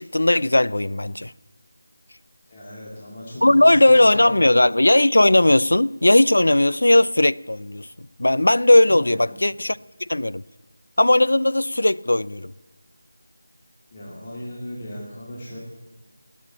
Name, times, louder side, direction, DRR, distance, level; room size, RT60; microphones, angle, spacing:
voice 1, 0.0-1.3 3.4-10.4 11.0-12.5, left 1 dB, 85° left, 0.4 m, -17 dB
voice 2, 2.5-4.4 8.9-9.4 13.9-15.6, equal, 25° left, 2.3 m, -37 dB
19.5 x 8.4 x 7.0 m
figure-of-eight pair, 175°, 0 cm